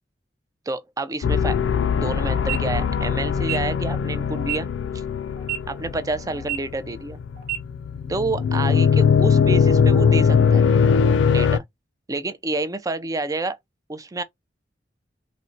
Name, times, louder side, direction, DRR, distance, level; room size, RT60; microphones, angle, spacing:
voice 1, 0.7-1.6 2.0-4.7 5.7-7.2 8.1-10.6 11.3-11.6 12.1-13.6 13.9-14.2, right 2 dB, 20° right, 0.4 m, -28 dB
sound 1, 1.2-11.6, left 6 dB, 85° left, 0.3 m, -20 dB
sound 2, 2.4-2.6 3.4-3.6 4.4-4.6 5.4-5.6 6.4-6.6 7.4-7.6, right 13 dB, 55° right, 1.1 m, -28 dB
4.0 x 2.1 x 2.5 m
head